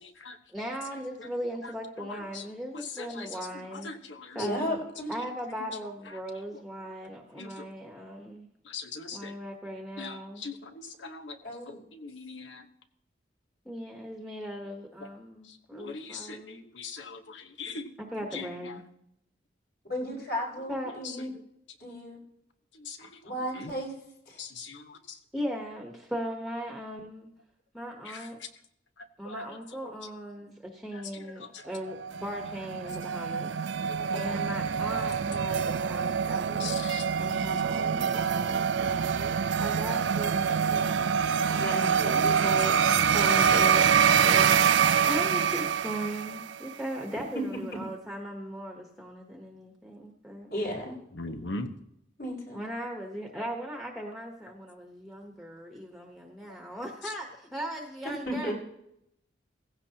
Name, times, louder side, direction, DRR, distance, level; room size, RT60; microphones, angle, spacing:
voice 1, 0.0-0.4 1.2-1.3 1.6-1.7 2.0-2.4 2.7-4.5 5.6-5.7 6.1-6.2 6.5-6.6 7.4-7.7 8.6-9.3 10.0-11.4 11.7-12.6 15.5-17.9 18.3-18.8 20.8-21.2 22.7-23.2 23.5-23.7 24.4-25.2 28.0-28.5 29.0-29.9 30.9-31.6 33.9-34.1 36.6-37.0 51.1-51.7 57.0-57.1, left 4 dB, 90° left, 6 dB, 1.2 m, -41 dB
voice 2, 0.5-3.9 4.3-4.8 5.1-8.5 9.1-10.4 13.6-16.6 18.0-18.8 20.7-20.9 25.3-27.3 27.7-28.4 29.2-36.8 37.2-39.2 39.6-41.2 41.7-42.8 43.1-43.8 44.1-50.5 52.5-58.5, equal, ahead, 1 dB, 1.1 m, -38 dB
voice 3, 4.4-5.1 11.4-11.8 19.9-21.3 21.8-22.2 23.0-23.9 24.3-24.4 34.1-34.4 39.1-39.3 41.5-42.8 50.5-50.9 52.2-52.6 58.0-58.5, equal, 60° left, -3 dB, 5.5 m, -35 dB
sound 1, 32.0-46.7, right 7 dB, 85° right, 0.4 m, -25 dB
16.5 x 15.5 x 2.9 m, 0.77 s
head